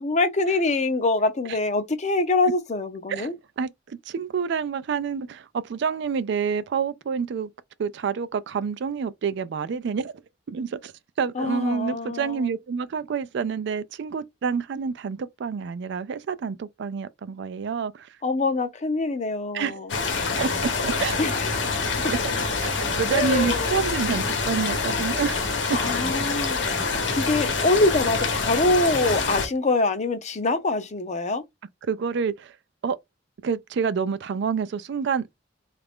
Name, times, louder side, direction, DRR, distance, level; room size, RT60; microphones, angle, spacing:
voice 1, 0.0-3.3 11.3-12.5 18.2-19.9 21.2-21.5 22.0-22.1 23.1-23.8 25.7-26.6 27.1-31.4, left 2 dB, 40° left, 0.6 m, -24 dB
voice 2, 3.1-7.5 7.8-10.1 10.5-10.9 11.2-18.1 19.5-19.8 20.4-21.3 22.1-22.3 22.6-25.4 31.8-32.5 32.8-33.0 33.4-35.3, right 6 dB, 65° right, 0.4 m, -28 dB
sound 1, 19.9-29.5, left 4 dB, 70° left, 0.9 m, -26 dB
3.2 x 2.5 x 3.5 m
head